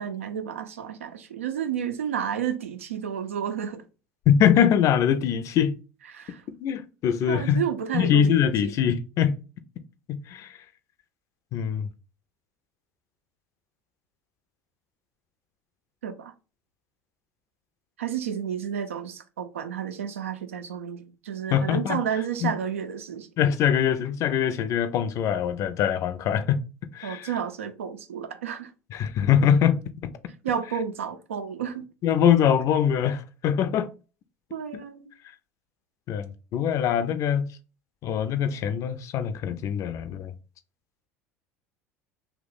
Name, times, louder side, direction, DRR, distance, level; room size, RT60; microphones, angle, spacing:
voice 1, 0.0-3.8 6.1-6.4 7.3-8.7 16.0-16.3 18.0-23.3 27.0-28.7 30.4-31.9 34.5-35.1, right 8 dB, 85° right, 0.4 m, -31 dB
voice 2, 4.3-5.7 6.6-7.6 7.9-9.4 10.1-10.6 11.5-11.9 21.5-22.0 22.4-22.5 23.4-26.6 26.9-27.3 28.9-30.1 32.0-33.9 36.1-37.5 38.0-40.3, left 8 dB, 50° left, 0.4 m, -23 dB
2.8 x 2.1 x 3.9 m
hypercardioid pair, 70°, 7 cm